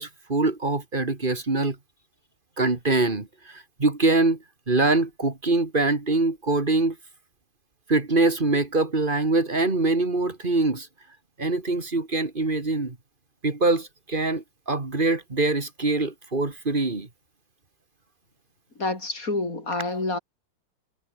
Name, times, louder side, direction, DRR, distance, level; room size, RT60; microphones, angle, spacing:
voice 1, 0.0-1.8 2.6-3.3 3.5-4.4 4.7-7.0 7.9-10.9 11.4-13.0 13.4-17.1, right 2 dB, 25° right, 2.4 m, -24 dB
voice 2, 18.8-20.2, left 2 dB, 45° left, 5.0 m, -28 dB
omnidirectional pair, 2.1 m